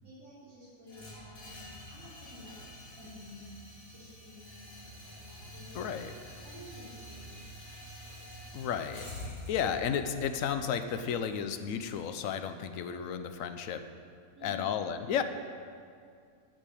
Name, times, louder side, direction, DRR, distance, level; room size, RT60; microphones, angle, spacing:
voice 1, 0.0-2.6 3.0-6.0 6.4-8.5 14.4-14.9, equal, 65° right, -12 dB, 3.5 m, -52 dB
sound 1, 0.9-12.9, left 1 dB, 45° left, 2.1 m, -48 dB
voice 2, 5.7-6.2 8.5-9.1 9.5-13.9 14.4-15.2, left 8 dB, 75° left, 9 dB, 1.0 m, -33 dB
9.0 x 6.6 x 8.4 m, 2.2 s
omnidirectional pair, 1.5 m